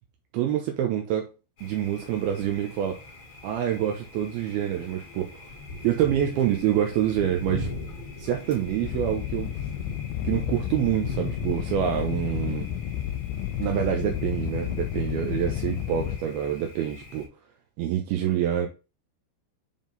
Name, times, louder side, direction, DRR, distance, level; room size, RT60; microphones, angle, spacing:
voice 1, 0.3-1.3 1.6-3.0 3.4-5.5 5.8-7.7 8.2-9.5 10.2-12.7 13.6-17.3 17.8-18.7, right 10 dB, 80° right, 2.5 m, -26 dB
Thunder, 1.6-17.3, left 2 dB, 45° left, 1.7 m, -40 dB
sound 1, 8.8-16.2, left 12 dB, 85° left, 2.7 m, -31 dB
7.3 x 3.7 x 3.9 m
omnidirectional pair, 4.9 m